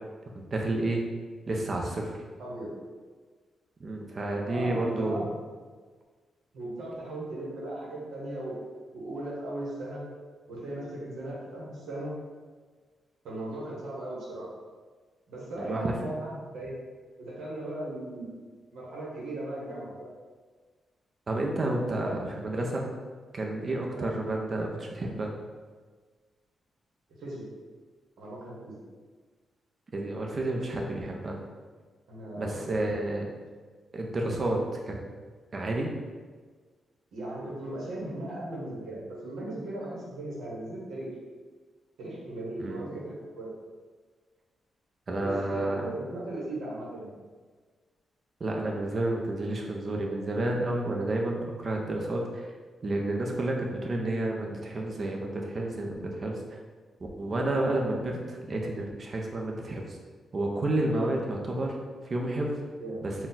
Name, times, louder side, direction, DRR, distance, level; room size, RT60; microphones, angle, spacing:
voice 1, 0.3-1.0 1.5-2.1 3.8-5.3 15.6-15.9 21.3-22.9 23.3-25.3 29.9-31.4 32.4-33.3 33.9-34.6 34.9-35.0 35.5-35.9 42.6-42.9 45.1-45.9 48.4-52.5 52.8-56.6 57.2-60.0 60.3-61.7 62.0-62.6 63.0-63.1, right 2 dB, 45° right, 0 dB, 0.7 m, -30 dB
voice 2, 2.4-2.7 4.4-5.3 6.5-8.5 8.9-10.0 10.5-12.1 13.2-14.5 15.3-16.7 17.2-18.4 18.7-20.1 21.5-22.2 23.9-24.1 27.2-27.5 28.2-28.8 32.1-33.0 37.1-41.1 42.0-43.5 45.2-47.2 60.9-61.1 62.8-63.0, right 1 dB, 80° right, -6 dB, 1.1 m, -37 dB
4.0 x 2.3 x 4.0 m, 1.5 s
cardioid pair, 80°, 0 cm